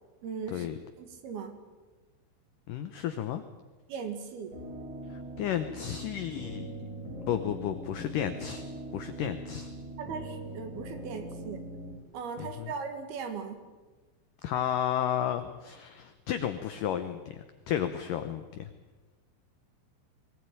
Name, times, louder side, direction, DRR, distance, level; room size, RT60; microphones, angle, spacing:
voice 1, 0.2-0.7 1.0-1.6 3.9-4.5 10.0-11.7 12.1-13.6, right 5 dB, 65° right, 7 dB, 3.5 m, -38 dB
voice 2, 2.7-3.4 5.1-6.7 7.3-8.6 8.9-9.7 12.4-12.7 14.4-18.7, left 10 dB, 80° left, 9 dB, 1.9 m, -32 dB
sound 1, 4.5-11.9, right 1 dB, 45° right, 7.8 m, -42 dB
21.5 x 18.5 x 9.2 m, 1.3 s
omnidirectional pair, 5.0 m